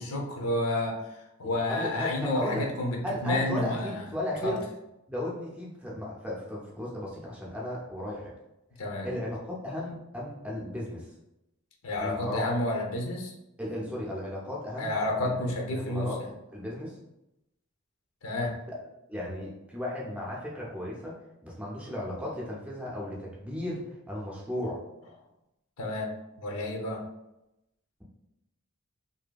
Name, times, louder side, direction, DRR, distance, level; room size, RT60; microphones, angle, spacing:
voice 1, 0.0-4.1 4.4-4.6 8.8-9.1 11.8-13.3 14.8-16.3 18.2-18.5 25.8-26.1 26.4-27.0, left 1 dB, 85° left, 0 dB, 0.6 m, -30 dB
voice 2, 1.4-2.7 3.0-4.6 5.1-8.3 9.0-11.1 12.0-12.4 13.6-15.3 15.7-16.2 16.5-16.9 19.1-21.2 21.4-24.8, left 1 dB, 5° right, -5 dB, 0.5 m, -35 dB
2.7 x 2.6 x 2.2 m, 0.89 s
head